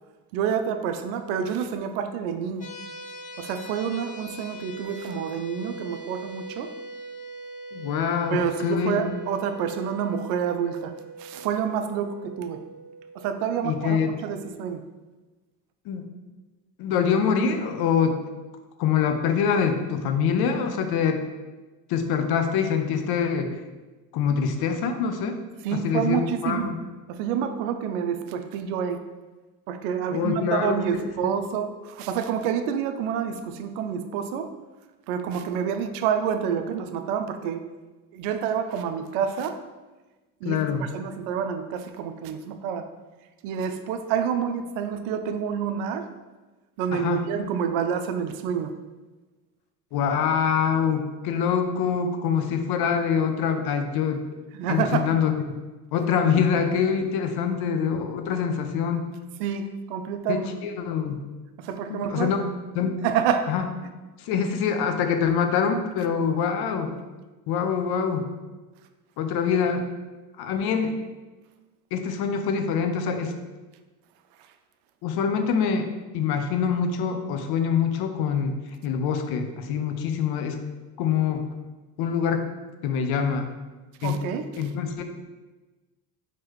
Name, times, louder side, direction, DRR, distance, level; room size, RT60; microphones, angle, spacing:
voice 1, 0.3-2.7 3.4-6.7 8.3-10.9 11.2-12.6 13.2-14.8 25.6-26.7 27.1-29.0 29.7-34.5 35.1-37.6 38.1-39.6 40.4-40.6 40.9-42.9 43.4-46.0 46.8-48.7 54.5-55.1 59.4-60.5 61.6-62.3 63.0-63.5 84.0-84.5, right 7 dB, 70° right, 8 dB, 0.6 m, -28 dB
sound 1, 2.6-13.8, right 2 dB, 15° left, 0.6 m, -41 dB
voice 2, 7.7-9.0 13.6-14.1 15.9-16.0 16.8-18.2 18.8-21.2 21.9-23.5 24.1-25.4 25.7-26.8 30.1-30.7 31.2-31.3 40.4-40.9 46.9-47.2 49.9-54.2 54.7-55.3 55.9-59.1 60.3-61.2 61.9-62.4 62.7-63.0 63.5-63.6 64.2-66.9 67.5-68.3 69.2-69.9 70.4-71.0 71.9-73.3 75.0-75.9 76.1-78.6 78.8-80.6 81.0-81.5 82.0-82.5 82.8-83.5 84.0-84.2 84.6-85.0, left 7 dB, 55° left, 6 dB, 0.7 m, -25 dB
4.7 x 2.9 x 3.0 m, 1.2 s
hypercardioid pair, 75°, 46 cm